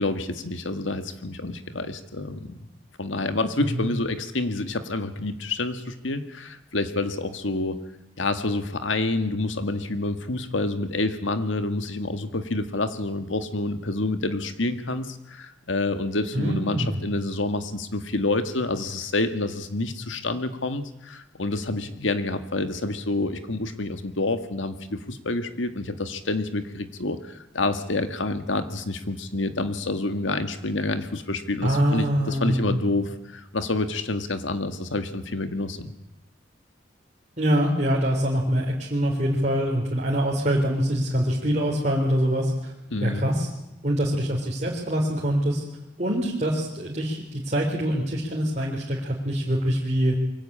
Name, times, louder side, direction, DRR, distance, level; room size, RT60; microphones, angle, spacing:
voice 1, 0.0-2.6 3.0-7.8 8.2-35.9 42.9-43.3, left 2 dB, 90° left, 9 dB, 1.8 m, -28 dB
voice 2, 16.3-17.0 31.6-32.8 37.4-42.7 43.0-43.5 43.8-45.6 46.0-50.1, equal, 40° right, -3 dB, 3.7 m, -24 dB
23.5 x 16.5 x 8.8 m, 0.90 s
head